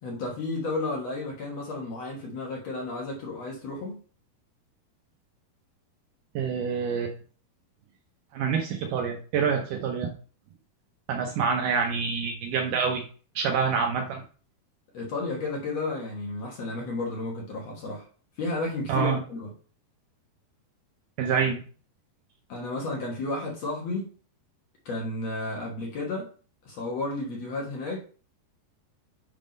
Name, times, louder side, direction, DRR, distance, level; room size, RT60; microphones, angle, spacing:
voice 1, 0.0-4.0 14.9-18.1 18.4-19.5 22.5-24.1 24.9-26.3 26.6-28.0, left 2 dB, 60° left, -2 dB, 1.8 m, -32 dB
voice 2, 6.4-7.1 8.3-10.1 11.1-13.0 13.4-14.2 18.9-19.2 21.2-21.6, right 6 dB, 85° right, 3 dB, 1.8 m, -26 dB
7.5 x 3.7 x 5.2 m, 0.41 s
omnidirectional pair, 4.8 m